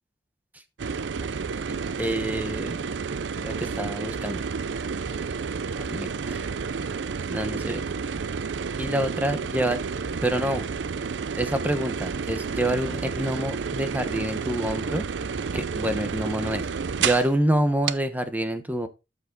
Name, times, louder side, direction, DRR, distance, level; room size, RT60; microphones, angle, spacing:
sound 1, 0.8-17.3 17.9-18.0, right 5 dB, 80° right, 0.5 m, -30 dB
voice 1, 1.7-2.9 3.4-4.5 5.8-6.5 7.0-7.8 8.8-9.8 10.2-10.6 11.4-15.0 15.5-18.9, right 1 dB, 10° right, 9 dB, 1.0 m, -27 dB
13.0 x 5.1 x 3.9 m, 0.26 s
head